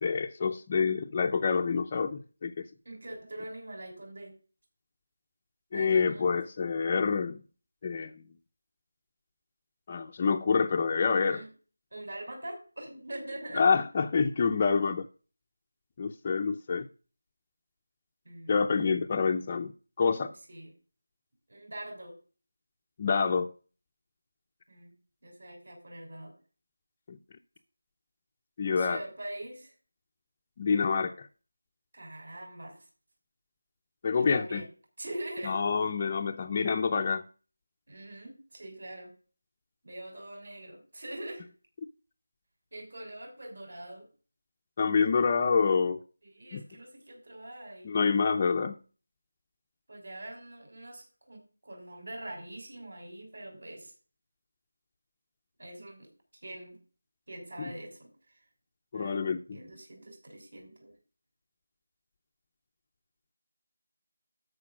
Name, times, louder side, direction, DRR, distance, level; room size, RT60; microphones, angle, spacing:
voice 1, 0.0-2.6 5.7-7.4 7.8-8.1 9.9-11.4 13.6-15.1 16.0-16.9 18.5-19.7 20.0-20.3 23.0-23.5 27.1-27.2 28.6-29.0 30.6-31.3 34.0-34.6 35.4-37.2 44.8-46.0 46.5-46.6 47.8-48.8 57.6-57.7 58.9-59.6, left 5 dB, 20° left, 0.5 m, -27 dB
voice 2, 2.8-4.3 5.7-6.3 11.3-11.5 11.9-13.7 18.2-19.0 20.5-20.7 21.5-22.2 24.7-24.9 25.2-26.3 28.8-29.7 31.9-32.9 34.2-34.7 35.0-35.6 37.9-39.1 39.8-41.5 42.7-44.1 46.2-47.9 49.9-53.9 55.6-56.1 56.4-56.8 57.3-58.4 58.9-59.2 59.5-60.9, right 1 dB, 60° right, 6.1 m, -43 dB
13.0 x 5.0 x 6.0 m
figure-of-eight pair, 175°, 0 cm